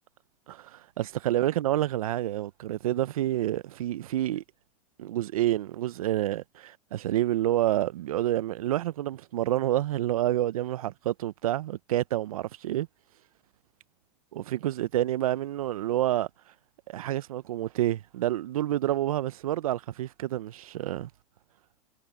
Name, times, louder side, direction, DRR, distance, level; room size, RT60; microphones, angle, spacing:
voice 1, 0.5-4.4 5.0-12.9 14.3-16.3 16.9-21.1, right 13 dB, 85° right, 0.6 m, -28 dB
hypercardioid pair, 120°, 18 cm